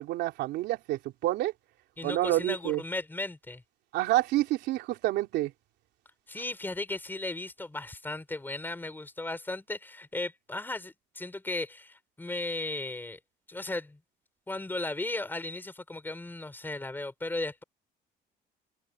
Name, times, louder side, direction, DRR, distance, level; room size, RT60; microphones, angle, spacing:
voice 1, 0.0-1.5 2.0-2.8 3.9-5.5, right 16 dB, 85° right, 3.0 m, -28 dB
voice 2, 2.0-3.6 6.3-13.2 13.5-14.0 14.5-17.6, left 2 dB, 10° left, 5.0 m, -36 dB
cardioid pair, 110°, 17 cm